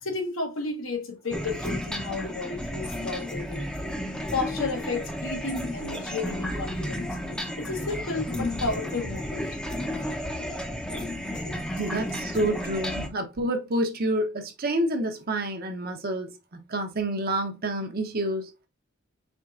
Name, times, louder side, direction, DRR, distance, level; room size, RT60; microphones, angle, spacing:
voice 1, 0.0-3.7 4.3-10.1 10.4-10.6 10.9-11.1 11.4-11.7 12.0-12.1 12.5-12.7, left 3 dB, 70° left, 1.1 m, -33 dB
sound 1, 1.3-13.1, equal, 5° left, 0.6 m, -33 dB
voice 2, 11.7-18.5, right 1 dB, 50° right, 0.8 m, -28 dB
4.5 x 3.4 x 2.4 m
head